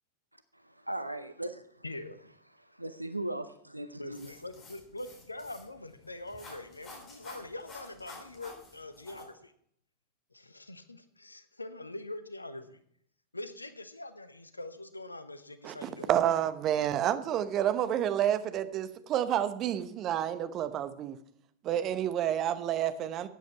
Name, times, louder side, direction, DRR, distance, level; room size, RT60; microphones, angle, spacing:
voice 1, 0.9-1.8 2.6-4.3, right 1 dB, 85° right, 0.7 m, -38 dB
voice 2, 1.8-2.3 3.9-9.5 10.3-12.8 13.3-16.1, left 2 dB, 80° left, 0.9 m, -43 dB
sound 1, 4.1-9.2, left 2 dB, 30° left, 3.4 m, -51 dB
voice 3, 15.6-21.2 21.6-23.3, right 11 dB, 35° right, 0.9 m, -29 dB
13.0 x 9.3 x 4.5 m
figure-of-eight pair, 90°, 0 cm